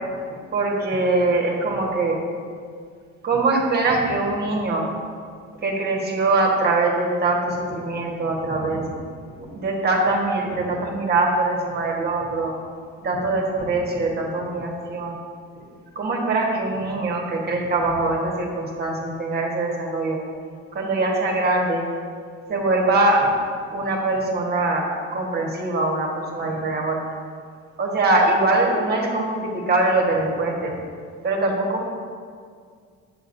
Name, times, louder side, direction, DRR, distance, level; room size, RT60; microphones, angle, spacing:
voice 1, 0.5-2.2 3.2-4.9 5.6-8.9 9.6-12.5 13.0-15.2 15.9-20.2 20.7-21.9 22.5-23.3 23.7-27.0 27.8-30.8 31.2-31.9, right 2 dB, 35° right, -1 dB, 1.5 m, -22 dB
10.0 x 7.8 x 2.7 m, 2.1 s
cardioid pair, 130°, 30 cm